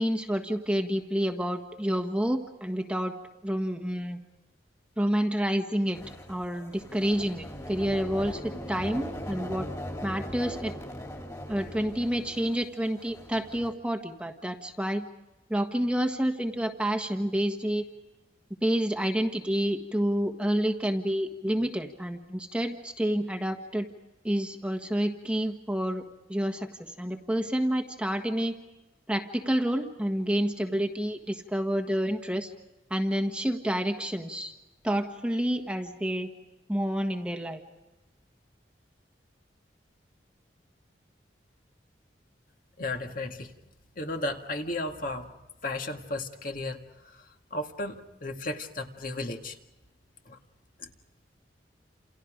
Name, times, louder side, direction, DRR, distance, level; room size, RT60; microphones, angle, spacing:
voice 1, 0.0-3.1 3.4-4.2 5.0-6.0 6.3-9.7 10.0-10.7 11.5-15.1 15.5-17.9 18.6-23.9 24.2-26.0 26.3-28.5 29.1-32.5 32.9-34.5 34.8-36.3 36.7-37.6, equal, 5° right, 5 dB, 1.4 m, -29 dB
sound 1, 5.9-13.7, left 1 dB, 20° left, 2.9 m, -40 dB
voice 2, 42.8-43.5 44.0-45.3 45.6-47.3 47.5-49.6 50.3-50.4 50.8-50.9, left 2 dB, 50° left, 4 dB, 2.1 m, -34 dB
29.0 x 28.5 x 5.1 m, 1.0 s
head